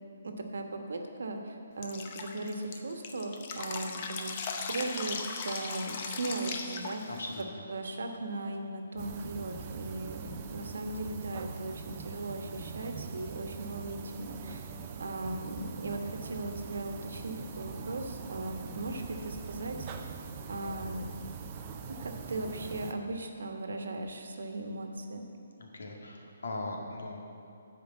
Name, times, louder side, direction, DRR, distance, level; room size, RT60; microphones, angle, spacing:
voice 1, 0.2-4.3 4.7-7.2 7.7-14.6 15.0-20.1 20.5-21.1 21.9-25.2, right 2 dB, 75° right, 4 dB, 1.2 m, -38 dB
Drip, 1.8-7.4, left 4 dB, 30° left, 0.7 m, -38 dB
voice 2, 7.1-7.4 25.6-27.3, left 2 dB, 75° left, 0 dB, 2.0 m, -39 dB
sound 1, 9.0-22.9, right 6 dB, 20° right, 0.5 m, -43 dB
11.5 x 5.0 x 8.0 m, 2.9 s
hypercardioid pair, 175°, 0 cm